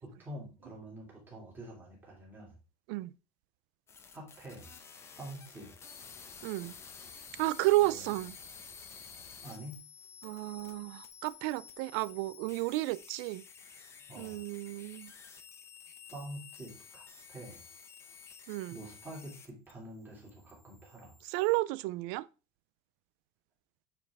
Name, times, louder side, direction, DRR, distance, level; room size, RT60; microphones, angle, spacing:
voice 1, 0.0-2.6 4.1-4.7 5.2-5.7 7.8-8.1 9.4-9.8 14.1-14.4 16.1-17.0 17.3-17.6 18.7-21.1, right 1 dB, 15° right, 2.7 m, -46 dB
sound 1, 3.9-19.7 20.0-21.6, left 6 dB, 20° left, 0.7 m, -52 dB
voice 2, 6.4-6.7 7.4-8.4 10.2-13.4 14.2-15.1 18.5-18.8 21.2-22.2, right 19 dB, 60° right, 0.4 m, -32 dB
8.6 x 4.6 x 3.4 m
cardioid pair, 175°, 15 cm